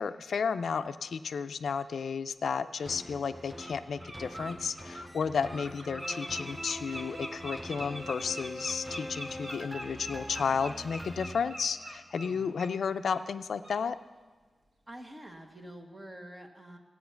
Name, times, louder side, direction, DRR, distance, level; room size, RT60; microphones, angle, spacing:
voice 1, 0.0-14.0, left 6 dB, 80° left, 11 dB, 0.4 m, -33 dB
Bird, 2.8-2.9 3.3-3.7 4.0-12.7 13.0-13.2 13.6-13.8, right 1 dB, 50° right, 1.5 m, -43 dB
sound 1, 2.9-12.2 12.7-12.8, equal, ahead, 0.5 m, -44 dB
voice 2, 12.2-12.6 14.9-16.8, right 1 dB, 25° right, 3 dB, 1.4 m, -47 dB
15.0 x 8.6 x 5.7 m, 1.4 s
wide cardioid pair, 105°, 0 cm